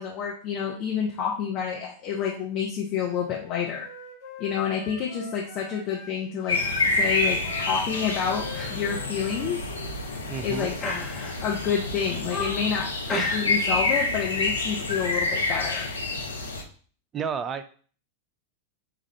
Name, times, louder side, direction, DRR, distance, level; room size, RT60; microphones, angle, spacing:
voice 1, 0.0-3.8 4.4-6.6 7.0-9.6 10.4-10.7 11.4-15.9, left 7 dB, 35° left, -3 dB, 0.8 m, -28 dB
Wind instrument woodwind instrument, 2.9-6.2 6.5-9.9, left 2 dB, 60° left, 1.1 m, -44 dB
sound 1, 6.4-6.8 7.2-7.4 7.9-8.1 8.5-8.8 9.1-9.2 9.8-10.3 10.8-11.6 12.0-12.7 13.1-13.8 14.0-14.3, left 2 dB, 20° left, 1.1 m, -34 dB
sound 2, 6.5-16.6, left 2 dB, 75° left, 0.7 m, -28 dB
voice 2, 10.3-10.7 17.1-17.6, right 6 dB, 25° right, 11 dB, 0.4 m, -30 dB
5.9 x 2.5 x 3.2 m, 0.44 s
figure-of-eight pair, 90°, 0 cm